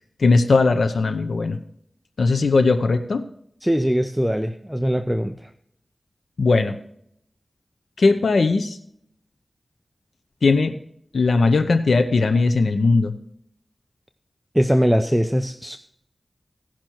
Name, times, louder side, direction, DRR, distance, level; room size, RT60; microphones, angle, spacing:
voice 1, 0.2-1.6 2.2-3.2 6.4-6.8 8.0-8.8 10.4-10.7 11.1-13.1, left 3 dB, 80° left, 7 dB, 0.7 m, -18 dB
voice 2, 3.6-5.5 14.5-15.8, equal, 5° right, 8 dB, 0.6 m, -21 dB
16.5 x 5.9 x 4.5 m, 0.69 s
wide cardioid pair, 50°, 0 cm